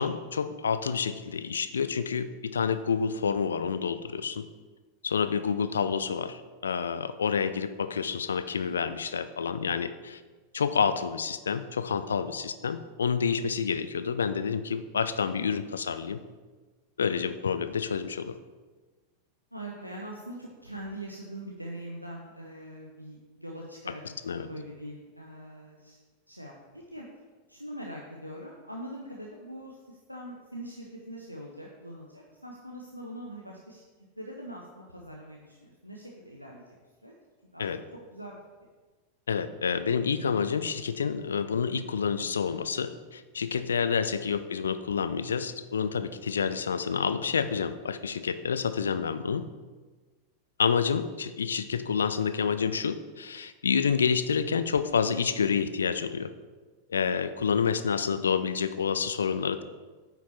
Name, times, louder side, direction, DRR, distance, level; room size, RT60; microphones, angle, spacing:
voice 1, 0.0-4.4 5.0-10.2 10.5-16.2 17.0-18.4 24.2-24.5 37.6-37.8 39.3-49.5 50.6-56.3 56.9-59.6, left 6 dB, 70° left, 12 dB, 0.5 m, -28 dB
voice 2, 19.5-24.0 24.3-26.0 26.3-27.1 27.5-33.8 34.2-36.6 37.0-37.1 37.5-37.7 38.1-38.4, right 1 dB, 90° right, -2 dB, 0.9 m, -42 dB
8.9 x 5.9 x 4.3 m, 1.3 s
figure-of-eight pair, 90°, 0 cm